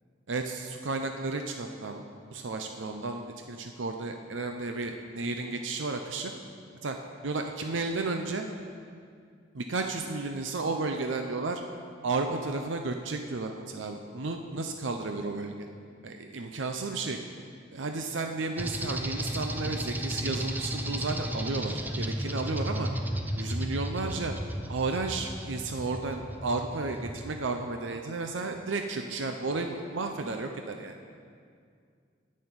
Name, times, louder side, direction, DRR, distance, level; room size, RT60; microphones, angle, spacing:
voice 1, 0.3-2.0 2.3-6.3 6.8-7.0 7.2-8.5 9.5-11.6 12.0-15.5 16.0-17.2 17.7-22.9 23.4-24.3 24.7-30.9, right 3 dB, 85° right, 5 dB, 0.7 m, -33 dB
sound 1, 18.6-27.3, right 1 dB, 10° right, 0.6 m, -34 dB
10.0 x 6.6 x 8.9 m, 2.2 s
head